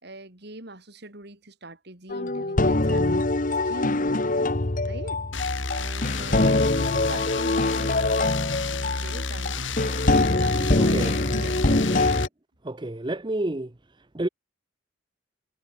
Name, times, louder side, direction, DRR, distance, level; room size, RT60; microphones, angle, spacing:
voice 1, 0.0-3.2 3.6-4.0 4.6-11.9, right 2 dB, 55° right, 4.0 m, -43 dB
sound 1, 2.1-12.3, left 2 dB, 40° left, 1.2 m, -24 dB
sound 2, 5.3-12.3, left 3 dB, 65° left, 3.9 m, -31 dB
voice 2, 10.8-11.2 11.9-12.1 12.6-13.7 14.1-14.3, right 1 dB, 20° right, 0.8 m, -29 dB
head